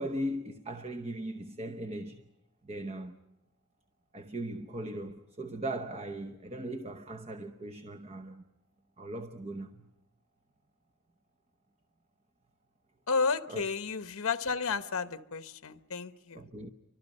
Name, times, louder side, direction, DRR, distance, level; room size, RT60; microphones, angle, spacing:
voice 1, 0.0-2.2 2.6-3.2 4.1-8.4 9.0-9.9 13.5-13.7 16.3-16.7, right 1 dB, 30° right, 0.9 m, -38 dB
voice 2, 13.1-16.4, left 5 dB, 70° left, 1.0 m, -32 dB
30.0 x 24.5 x 5.4 m
head